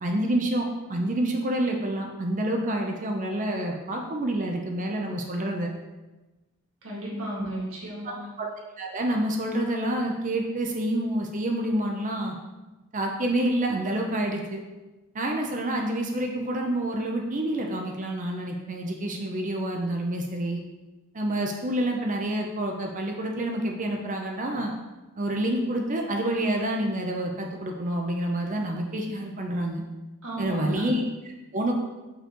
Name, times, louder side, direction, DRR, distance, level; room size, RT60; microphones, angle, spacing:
voice 1, 0.0-5.7 8.4-8.5 8.8-12.4 12.9-14.6 15.1-20.6 21.1-24.7 25.2-29.8 30.4-31.7, right 1 dB, 35° right, 2 dB, 0.6 m, -28 dB
voice 2, 6.8-8.3 30.2-30.8, right 1 dB, 70° right, -5 dB, 1.7 m, -34 dB
6.5 x 5.3 x 3.0 m, 1.1 s
head